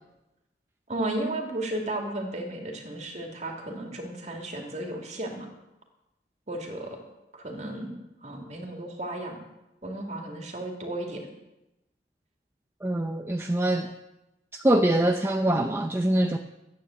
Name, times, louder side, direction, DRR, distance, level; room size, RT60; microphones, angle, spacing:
voice 1, 0.9-5.5 6.5-7.0 7.3-9.4 9.8-11.3, right 1 dB, 40° right, 2 dB, 2.6 m, -34 dB
voice 2, 12.8-13.9 14.6-16.4, right 1 dB, 15° right, 4 dB, 0.6 m, -24 dB
13.0 x 9.3 x 7.9 m, 0.95 s
head